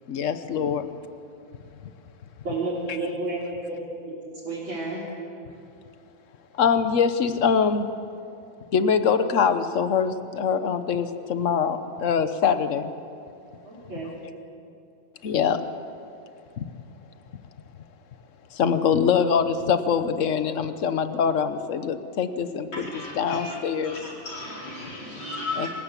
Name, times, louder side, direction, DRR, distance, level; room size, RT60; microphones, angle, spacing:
voice 1, 0.1-0.9 6.6-7.9 8.7-12.9 15.2-15.6 16.6-16.7 18.5-23.9 25.6-25.7, left 6 dB, 50° left, 10 dB, 1.1 m, -23 dB
voice 2, 2.4-3.4 3.7-3.8 4.1-4.2 4.4-5.0 13.6-14.1, right 2 dB, 90° right, -9 dB, 4.6 m, -30 dB
voice 3, 22.7-23.5 23.9-24.0 24.2-25.7, left 2 dB, 90° left, -3 dB, 5.3 m, -34 dB
27.0 x 16.0 x 8.3 m, 2.6 s
omnidirectional pair, 2.1 m